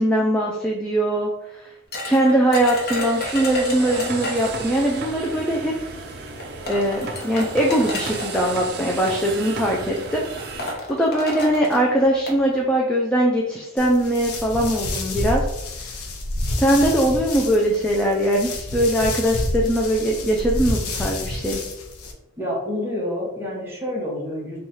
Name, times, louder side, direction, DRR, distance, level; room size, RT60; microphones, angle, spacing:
voice 1, 0.0-1.7 2.1-5.7 6.7-10.2 10.9-15.4 16.4-21.6, right 1 dB, 5° left, -3 dB, 0.3 m, -21 dB
sound 1, 1.9-4.7 5.8-5.9 6.4-8.5 9.5-9.7 10.0-10.1 10.4-12.4, left 1 dB, 50° left, 0.8 m, -31 dB
sound 2, 2.5-10.7, right 3 dB, 50° right, 0.5 m, -34 dB
sound 3, 13.8-22.1, left 2 dB, 80° left, 0.6 m, -29 dB
voice 2, 22.4-24.6, left 1 dB, 10° right, -4 dB, 1.0 m, -28 dB
3.0 x 2.3 x 4.0 m, 0.90 s
head